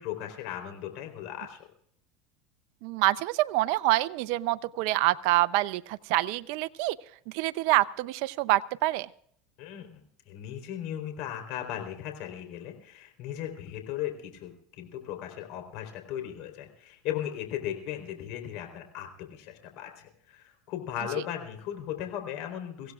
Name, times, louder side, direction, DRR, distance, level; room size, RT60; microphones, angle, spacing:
voice 1, 0.0-1.6 9.6-22.9, left 11 dB, 65° left, 4 dB, 3.8 m, -37 dB
voice 2, 2.8-7.0 7.3-9.1, right 17 dB, 65° right, 15 dB, 0.6 m, -26 dB
24.5 x 16.0 x 2.4 m, 0.64 s
supercardioid pair, 115°, 0 cm